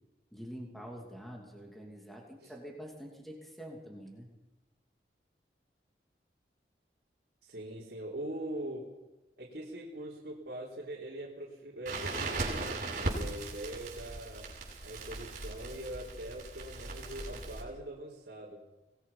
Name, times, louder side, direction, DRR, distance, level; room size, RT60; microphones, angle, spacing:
voice 1, 0.3-4.3, equal, ahead, -1 dB, 2.7 m, -46 dB
voice 2, 7.4-8.9 9.4-14.5 14.8-18.6, right 1 dB, 65° right, -5 dB, 3.7 m, -42 dB
Crackle, 11.9-17.6, right 2 dB, 45° right, 7.0 m, -38 dB
25.0 x 19.0 x 5.7 m, 1.1 s
head